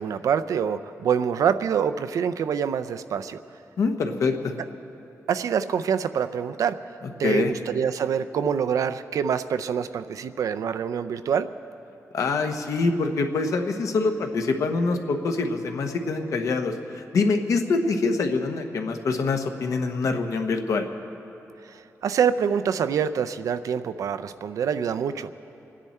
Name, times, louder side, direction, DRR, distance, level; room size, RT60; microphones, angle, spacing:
voice 1, 0.0-3.4 5.3-6.8 7.2-11.5 21.7-25.4, right 7 dB, 80° right, 11 dB, 0.5 m, -25 dB
voice 2, 3.8-4.5 7.2-7.5 12.1-20.8, left 3 dB, 70° left, 5 dB, 1.1 m, -25 dB
28.0 x 10.0 x 4.4 m, 2.8 s
wide cardioid pair, 170°, 6 cm